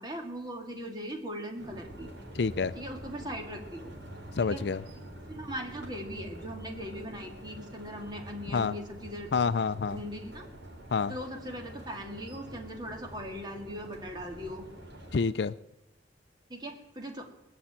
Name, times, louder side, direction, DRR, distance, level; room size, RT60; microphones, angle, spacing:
voice 1, 0.0-2.1 2.7-3.9 4.4-4.7 5.3-9.3 9.9-10.5 11.1-14.6 16.5-17.3, equal, 25° right, 2 dB, 2.2 m, -39 dB
sound 1, 1.6-15.2, right 1 dB, 70° right, 4.6 m, -46 dB
voice 2, 2.3-2.7 4.4-4.8 8.5-8.8 9.3-10.0 10.9-11.1 15.1-15.5, left 5 dB, 65° left, 15 dB, 0.5 m, -28 dB
21.0 x 7.1 x 8.9 m, 0.95 s
head